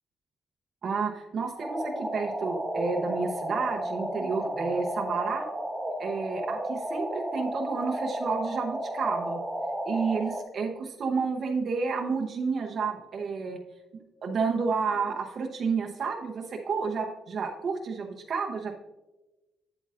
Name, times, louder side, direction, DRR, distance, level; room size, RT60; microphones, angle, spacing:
voice 1, 0.8-5.5 6.0-9.4 9.9-13.6 14.2-18.8, right 5 dB, 55° right, 2 dB, 0.8 m, -30 dB
sound 1, 1.6-10.4, right 1 dB, 15° right, 1.1 m, -33 dB
8.8 x 8.3 x 2.5 m, 1.1 s
cardioid pair, 90°, 0 cm